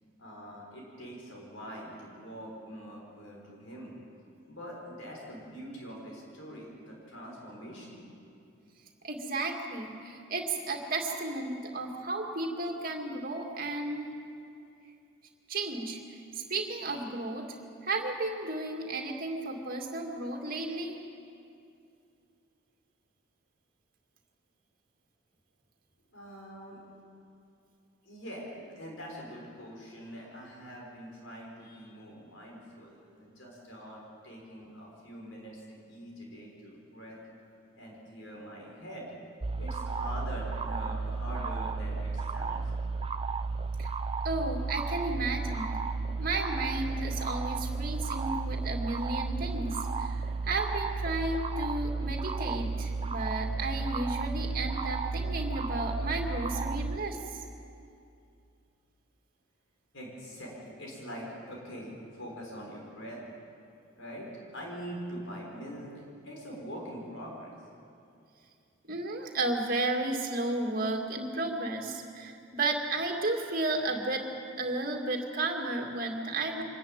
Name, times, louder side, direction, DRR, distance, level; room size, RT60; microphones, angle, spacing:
voice 1, 0.2-3.9 4.5-8.0 26.1-26.8 28.0-37.2 37.7-39.1 39.6-42.7 59.9-63.2 64.0-67.6, equal, 65° left, -2 dB, 5.2 m, -44 dB
voice 2, 9.0-14.1 15.5-17.5 17.8-21.0 43.8-43.9 44.2-45.8 46.2-57.4 68.8-74.2 74.6-76.6, right 2 dB, 45° right, 2 dB, 2.3 m, -33 dB
sound 1, 39.4-57.0, right 4 dB, 25° right, 0.5 m, -33 dB
25.0 x 14.0 x 9.0 m, 2.6 s
head